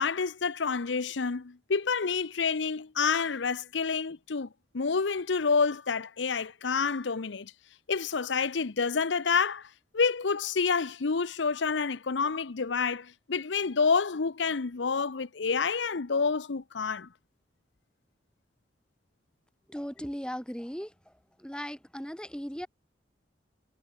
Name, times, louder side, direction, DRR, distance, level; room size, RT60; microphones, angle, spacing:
voice 1, 0.0-4.5 4.7-7.5 7.9-9.7 9.9-17.1, left 5 dB, 85° left, 0.8 m, -28 dB
voice 2, 19.7-21.1 21.4-22.7, equal, 5° left, 2.9 m, -38 dB
head